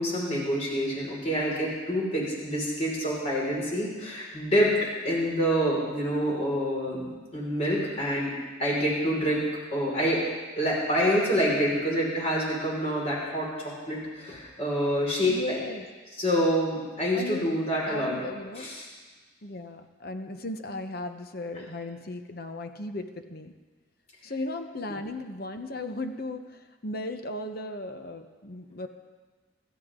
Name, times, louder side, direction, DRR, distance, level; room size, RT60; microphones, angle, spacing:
voice 1, 0.0-4.7 5.0-8.3 8.6-9.4 9.7-10.2 10.6-13.5 13.9-15.6 16.1-18.2 18.5-18.9, equal, 35° left, -4 dB, 5.5 m, -27 dB
voice 2, 15.3-15.9 17.1-17.5 17.9-18.7 19.4-23.5 24.2-26.4 26.8-28.9, left 2 dB, 50° left, 7 dB, 1.1 m, -36 dB
25.0 x 13.5 x 3.9 m, 1.4 s
head